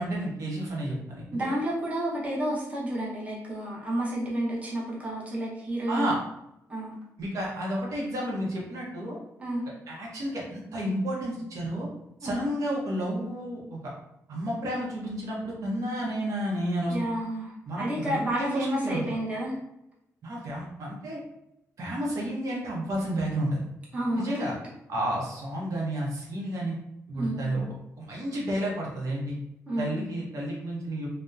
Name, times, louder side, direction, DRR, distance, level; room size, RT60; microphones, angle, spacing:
voice 1, 0.0-1.6 5.9-6.2 7.2-9.2 9.9-11.9 12.2-13.8 14.3-16.9 17.7-19.0 20.2-21.2 21.8-23.7 24.2-24.5 24.9-26.7 27.1-27.6 28.0-29.4 29.8-31.1, right 1 dB, 65° right, -3 dB, 0.7 m, -31 dB
voice 2, 1.3-6.1 6.7-6.9 9.4-9.6 12.2-12.4 16.9-19.5 23.9-24.3 27.1-27.6 29.7-30.1, right 1 dB, 20° right, -5 dB, 0.6 m, -30 dB
2.7 x 2.0 x 2.3 m, 0.84 s
wide cardioid pair, 140°, 6 cm